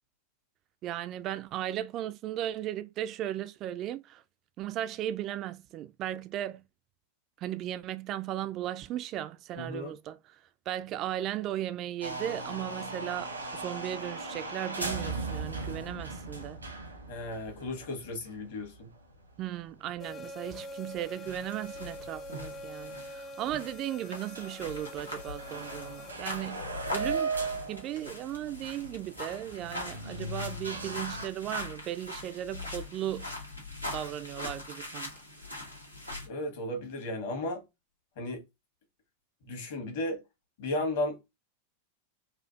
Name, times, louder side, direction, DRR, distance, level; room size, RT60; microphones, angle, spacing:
voice 1, 0.8-4.2 4.6-6.6 7.4-10.2 10.7-16.6 19.4-27.3 27.7-33.3 33.9-35.1, right 12 dB, 35° right, 0.3 m, -36 dB
voice 2, 9.6-10.0 17.1-18.9 36.3-37.6 38.2-38.4 39.4-40.2 40.6-41.3, left 1 dB, 55° left, 1.4 m, -34 dB
sound 1, 12.0-20.2 20.5-20.6 21.1-21.2 22.2-22.3 22.5-22.6 23.0-23.1 23.5-23.8 24.1-24.2 24.3-31.3, right 3 dB, 80° right, 1.0 m, -38 dB
sound 2, 20.0-26.1, equal, 25° left, 0.6 m, -44 dB
sound 3, 21.2-36.3, left 2 dB, 85° left, 1.2 m, -42 dB
4.3 x 2.4 x 2.3 m
figure-of-eight pair, 90°, 0 cm